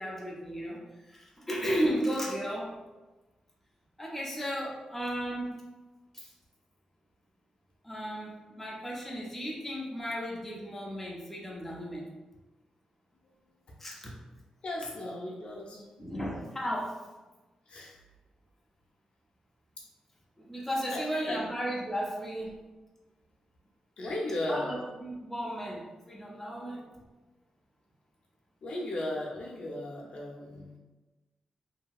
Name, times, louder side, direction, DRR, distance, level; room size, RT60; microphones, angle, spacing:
voice 1, 0.0-2.7 4.0-5.5 6.1-6.3 7.8-12.0 13.8-14.1 16.0-17.0 20.4-22.5 24.5-26.9 30.5-30.6, equal, 10° left, -4 dB, 0.5 m, -34 dB
voice 2, 14.6-15.9 17.7-17.9 20.9-21.4 24.0-24.7 28.6-30.7, left 1 dB, 60° left, -3 dB, 0.7 m, -36 dB
2.8 x 2.6 x 2.4 m, 1.2 s
wide cardioid pair, 110°, 2 cm